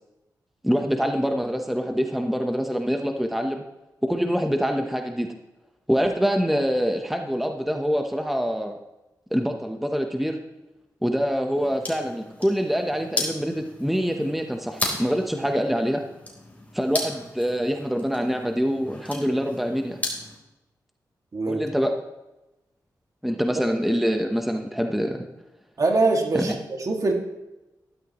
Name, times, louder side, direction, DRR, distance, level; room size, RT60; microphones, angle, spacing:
voice 1, 0.6-3.6 4.0-5.3 5.9-8.8 9.3-10.4 11.0-16.0 16.7-20.0 21.5-21.9 23.2-25.3 26.3-26.5, equal, ahead, 4 dB, 1.0 m, -25 dB
sound 1, 11.5-20.4, left 1 dB, 20° left, 3.8 m, -35 dB
voice 2, 25.8-27.1, right 3 dB, 50° right, 2 dB, 2.1 m, -23 dB
13.5 x 12.0 x 3.1 m, 0.99 s
cardioid pair, 60°, 7 cm